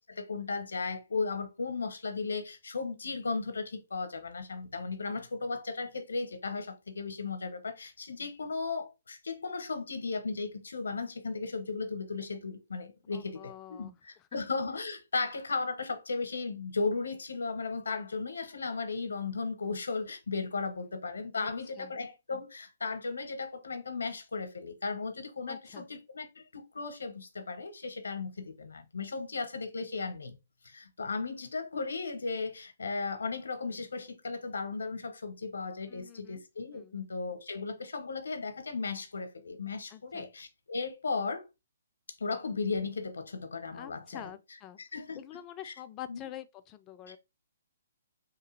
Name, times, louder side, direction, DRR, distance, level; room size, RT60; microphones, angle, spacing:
voice 1, 0.0-30.4 30.6-41.4 42.2-44.3 44.8-45.2 45.6-45.7 46.1-46.2, left 4 dB, 75° left, 0.7 m, -36 dB
voice 2, 13.1-14.3 20.8-21.0 21.4-21.9 25.5-25.9 35.9-36.4 36.7-37.0 39.9-40.3 43.7-44.8 45.2-47.2, left 12 dB, 25° left, 0.3 m, -47 dB
2.9 x 2.3 x 3.0 m
figure-of-eight pair, 130°, 0 cm